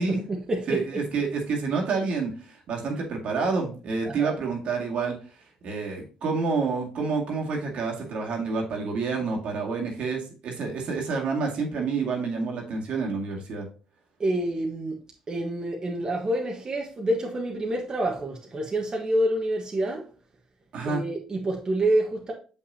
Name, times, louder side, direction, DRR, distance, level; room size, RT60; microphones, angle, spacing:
voice 1, 0.0-1.0 4.0-4.3 14.2-15.0 15.3-20.1 20.8-22.3, right 1 dB, 35° right, 1.4 m, -27 dB
voice 2, 0.7-2.3 2.7-5.1 5.6-13.7 20.7-21.0, right 4 dB, 65° right, 2.2 m, -28 dB
6.5 x 5.8 x 2.8 m
supercardioid pair, 60°, 2 cm